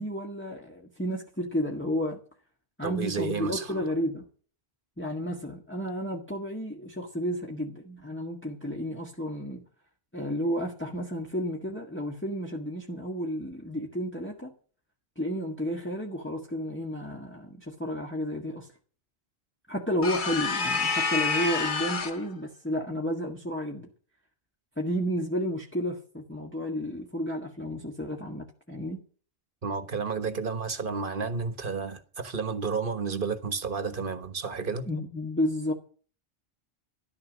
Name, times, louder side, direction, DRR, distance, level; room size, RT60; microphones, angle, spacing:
voice 1, 0.0-2.2 2.8-4.3 5.0-9.6 10.1-14.5 15.1-18.7 19.7-23.9 24.8-29.0 34.9-35.7, equal, 10° left, 1.7 m, -32 dB
voice 2, 2.8-3.7 29.6-34.9, right 5 dB, 50° right, 1.5 m, -31 dB
sound 1, 20.0-22.3, left 4 dB, 45° left, 1.1 m, -28 dB
13.5 x 12.0 x 6.4 m
omnidirectional pair, 1.2 m